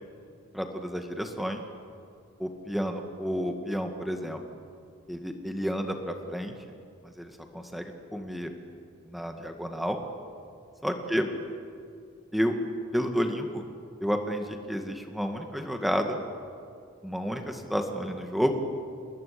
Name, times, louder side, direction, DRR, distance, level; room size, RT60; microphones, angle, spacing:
voice 1, 0.5-1.6 2.4-4.4 5.1-6.5 7.0-8.5 9.1-10.0 10.8-11.3 12.3-12.6 12.9-13.6 14.0-16.2 17.0-18.6, equal, ahead, 4 dB, 2.0 m, -30 dB
28.5 x 21.0 x 8.7 m, 2.4 s
head